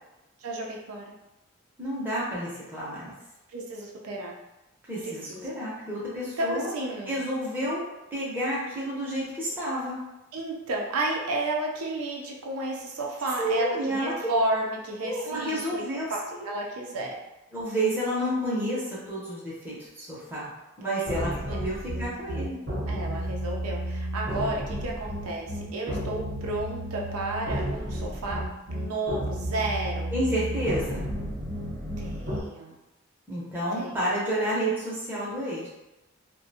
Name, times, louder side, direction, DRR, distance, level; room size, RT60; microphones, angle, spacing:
voice 1, 0.4-1.0 3.5-4.3 5.0-5.6 6.4-7.1 10.3-15.8 16.1-17.2 20.8-21.1 21.5-21.6 22.9-30.1 32.0-32.8 33.8-34.0, right 2 dB, 85° right, -1 dB, 0.5 m, -32 dB
voice 2, 1.8-3.2 4.9-6.7 7.1-7.8 8.1-10.0 13.4-14.1 15.0-16.5 17.5-20.5 20.8-22.6 30.1-31.1 33.3-35.7, right 1 dB, 10° right, -8 dB, 0.6 m, -30 dB
sound 1, 21.0-32.4, equal, 45° right, 0.8 m, -32 dB
2.4 x 2.1 x 2.7 m, 0.98 s
head